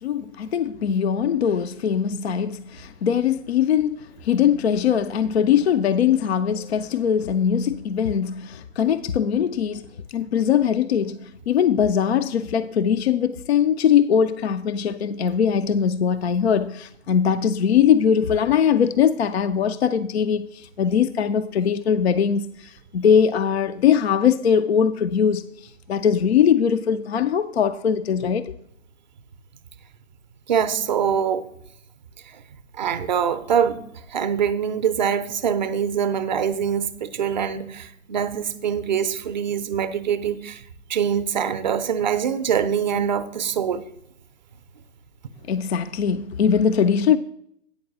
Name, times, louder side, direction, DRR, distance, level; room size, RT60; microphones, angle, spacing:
voice 1, 0.0-28.5 45.5-47.2, left 8 dB, 50° left, 0.4 m, -21 dB
voice 2, 30.5-31.4 32.3-32.4 32.7-40.6 40.9-43.8, right 8 dB, 35° right, 0.5 m, -24 dB
8.9 x 4.5 x 7.0 m
figure-of-eight pair, 135°, 41 cm